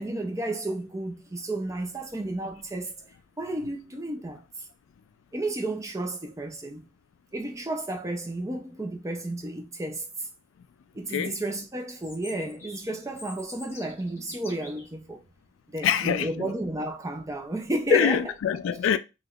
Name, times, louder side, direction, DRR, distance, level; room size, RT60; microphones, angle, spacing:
voice 1, 0.0-3.0 3.4-4.7 5.3-6.9 7.3-10.0 10.9-15.2 15.7-18.2, right 1 dB, 15° right, 0.5 m, -32 dB
voice 2, 11.1-11.4 15.8-16.5 17.9-19.0, left 8 dB, 85° left, 0.3 m, -25 dB
Chirp tweet, 11.9-14.9, left 2 dB, 15° left, 0.9 m, -46 dB
3.2 x 3.0 x 2.4 m
head